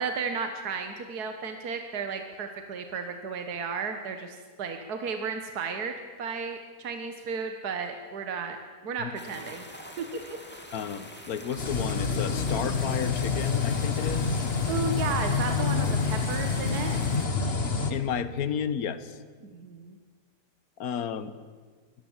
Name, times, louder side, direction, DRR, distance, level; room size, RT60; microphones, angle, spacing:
voice 1, 0.0-8.6 8.8-9.7 10.0-10.2 14.4-17.0 19.5-20.0, right 5 dB, 70° right, 6 dB, 1.9 m, -34 dB
sound 1, 9.1-17.3, equal, 5° left, 2.5 m, -45 dB
voice 2, 10.7-14.5 17.9-19.2 20.8-21.3, left 8 dB, 65° left, 13 dB, 1.5 m, -32 dB
sound 2, 11.6-17.9, left 5 dB, 40° left, 1.6 m, -27 dB
23.5 x 19.0 x 7.3 m, 1.5 s
omnidirectional pair, 1.8 m